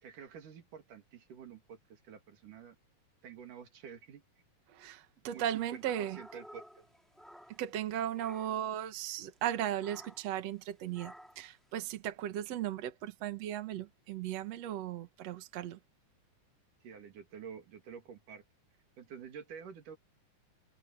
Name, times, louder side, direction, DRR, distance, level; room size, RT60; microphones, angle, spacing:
voice 1, 0.0-2.8 3.2-4.2 5.3-6.9 16.8-18.4 19.0-20.0, right 7 dB, 90° right, 4.1 m, -49 dB
voice 2, 4.7-6.2 7.5-15.8, right 11 dB, 60° right, 2.4 m, -37 dB
sound 1, 5.4-7.8 8.1-8.7 9.8-10.4 10.9-11.5, equal, ahead, 2.7 m, -54 dB
omnidirectional pair, 3.5 m